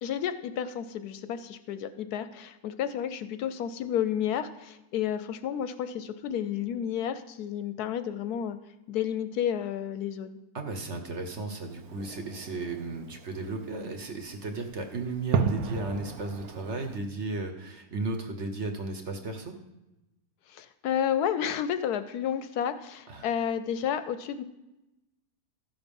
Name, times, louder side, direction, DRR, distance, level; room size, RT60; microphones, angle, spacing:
voice 1, 0.0-8.6 8.9-10.4 20.5-24.4, left 9 dB, 75° left, 12 dB, 1.0 m, -31 dB
voice 2, 10.5-19.5 23.1-23.3, right 3 dB, 50° right, 4 dB, 1.1 m, -35 dB
Fireworks, 11.7-17.0, right 6 dB, 65° right, 1.1 m, -34 dB
13.5 x 6.0 x 5.3 m, 0.98 s
omnidirectional pair, 1.8 m